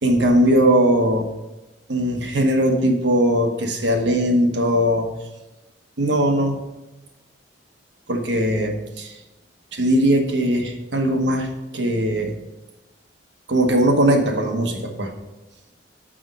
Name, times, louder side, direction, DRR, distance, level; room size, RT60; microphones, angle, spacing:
voice 1, 0.0-1.3 1.9-5.1 6.0-6.6 8.1-9.1 9.7-11.5 11.7-12.3 13.5-15.1, equal, 75° right, 3 dB, 1.2 m, -19 dB
6.2 x 5.0 x 6.1 m, 1.0 s
head